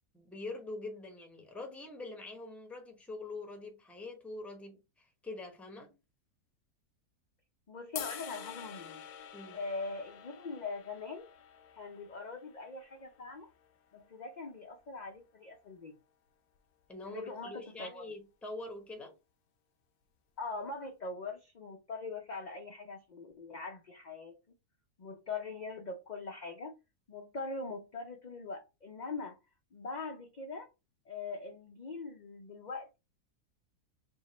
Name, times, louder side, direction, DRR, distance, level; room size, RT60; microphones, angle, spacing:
voice 1, 0.1-5.9 9.3-9.6 16.9-19.2, left 2 dB, ahead, 0.6 m, -44 dB
voice 2, 7.7-9.0 9.5-11.2 11.8-13.5 13.9-15.9 17.0-18.1 20.4-24.4 25.0-26.7 27.1-29.4 29.7-30.7 31.1-33.0, left 3 dB, 55° left, 0.4 m, -42 dB
sound 1, 8.0-14.2, left 9 dB, 80° left, 1.1 m, -48 dB
3.6 x 2.7 x 4.0 m
omnidirectional pair, 1.6 m